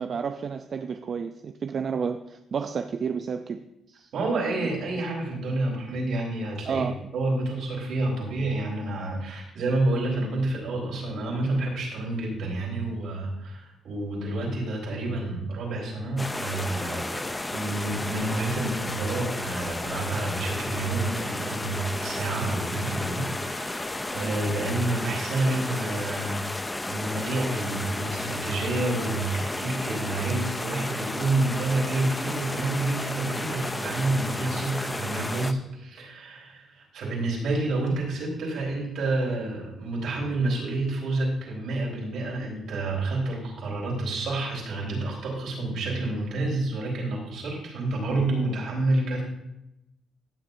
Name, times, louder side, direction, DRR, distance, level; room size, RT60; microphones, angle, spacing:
voice 1, 0.0-4.1 4.6-4.7 6.7-7.0 24.2-24.4, right 6 dB, 50° right, 8 dB, 0.5 m, -31 dB
voice 2, 4.1-6.9 7.1-49.2, right 2 dB, 75° right, -2 dB, 4.2 m, -29 dB
sound 1, 16.2-35.5, left 2 dB, 15° left, 0.6 m, -33 dB
15.5 x 7.3 x 2.7 m, 0.86 s
cardioid pair, 90°, 0 cm